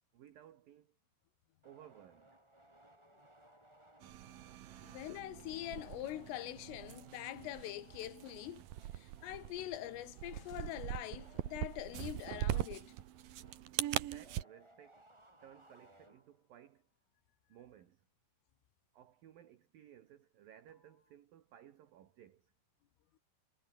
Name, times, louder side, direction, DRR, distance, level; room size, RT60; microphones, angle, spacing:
voice 1, 0.1-1.0 1.6-2.4 13.9-15.0 15.4-16.9 17.5-18.1 18.9-22.5, right 11 dB, 65° right, 2.5 m, -59 dB
sound 1, 1.6-16.6, right 1 dB, 10° right, 2.3 m, -65 dB
sound 2, 3.4-4.9 7.8-10.2 14.3-17.4 20.7-21.2, left 4 dB, 45° left, 9.6 m, -76 dB
sound 3, 4.0-14.4, right 13 dB, 80° right, 2.0 m, -42 dB
voice 2, 4.8-8.6 8.9-12.9, left 14 dB, 75° left, 4.5 m, -44 dB
omnidirectional pair, 5.9 m